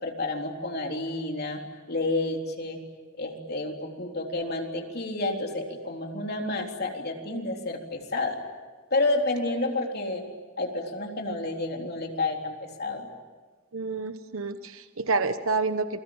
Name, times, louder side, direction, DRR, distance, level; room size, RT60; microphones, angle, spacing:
voice 1, 0.0-1.6 1.9-2.8 3.2-8.4 8.9-10.3 10.6-13.1, left 2 dB, 50° left, 2 dB, 3.6 m, -30 dB
voice 2, 13.7-16.0, right 4 dB, 80° right, 10 dB, 1.1 m, -28 dB
28.5 x 23.0 x 9.0 m, 1.4 s
head